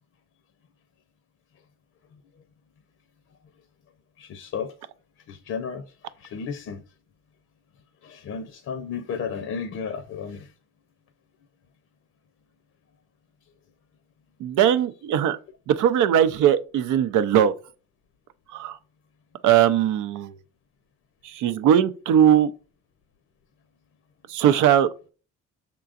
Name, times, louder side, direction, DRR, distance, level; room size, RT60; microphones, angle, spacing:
voice 1, 4.2-4.7 5.3-5.8 6.2-6.8 8.0-10.5, left 6 dB, 55° left, 0.6 m, -33 dB
voice 2, 14.4-15.4 15.7-17.5 18.5-18.8 19.4-20.4 21.2-22.5 24.3-25.1, right 10 dB, 80° right, 0.6 m, -20 dB
5.8 x 3.7 x 2.4 m
cardioid pair, 90°, 30 cm